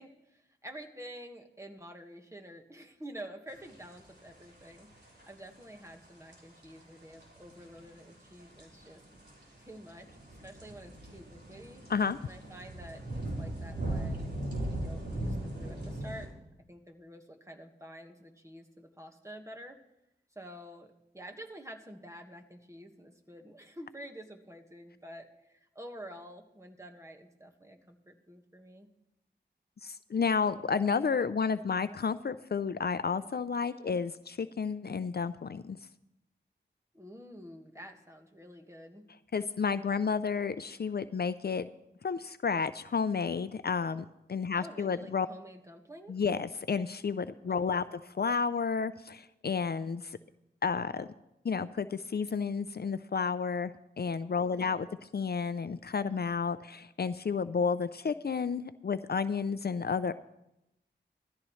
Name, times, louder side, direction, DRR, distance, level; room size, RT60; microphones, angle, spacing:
voice 1, 0.0-9.0 9.6-10.1 10.4-11.8 12.2-14.4 14.7-16.3 16.7-19.8 20.3-28.9 33.7-34.0 36.9-39.1 44.5-46.1 47.5-48.0 54.5-54.8, equal, 15° right, 3 dB, 1.6 m, -49 dB
sound 1, 3.5-16.3, right 1 dB, 60° right, 4.2 m, -39 dB
voice 2, 29.8-35.8 39.3-41.7 42.0-45.3 46.1-50.2 50.6-51.1 51.4-53.7 54.0-54.9 55.1-60.1, left 5 dB, 55° left, 13 dB, 0.5 m, -31 dB
17.0 x 13.5 x 3.2 m, 0.88 s
cardioid pair, 45°, 19 cm